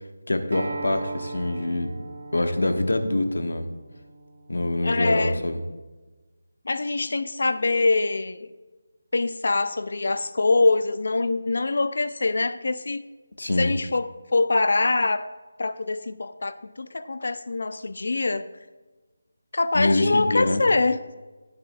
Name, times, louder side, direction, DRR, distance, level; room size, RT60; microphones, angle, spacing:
voice 1, 0.3-1.9 2.3-3.7 4.5-5.6 13.4-13.7 19.7-20.6, left 2 dB, 90° left, 7 dB, 1.2 m, -24 dB
Acoustic guitar, 0.5-5.7, right 3 dB, 55° right, 1.0 m, -39 dB
voice 2, 4.8-5.4 6.7-8.5 9.1-13.0 13.6-15.3 15.6-18.5 19.5-21.0, left 3 dB, 45° left, 12 dB, 0.4 m, -24 dB
17.5 x 6.8 x 2.3 m, 1.3 s
figure-of-eight pair, 180°, 0 cm